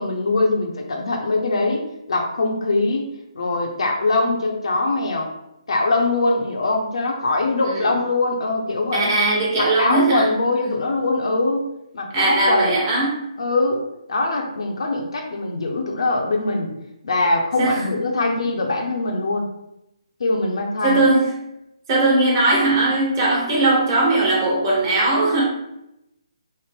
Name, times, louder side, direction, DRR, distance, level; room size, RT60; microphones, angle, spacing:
voice 1, 0.0-5.3 5.7-9.1 9.6-11.7 11.9-12.8 13.4-13.8 14.1-16.7 17.0-19.5 20.2-21.1, left 2 dB, 65° left, 1 dB, 0.7 m, -22 dB
voice 2, 8.9-10.3 10.7-10.8 12.1-13.2 17.6-18.0 20.8-21.3 21.9-25.4, right 2 dB, 35° right, -4 dB, 1.1 m, -19 dB
3.2 x 2.1 x 3.6 m, 0.85 s
figure-of-eight pair, 145°, 3 cm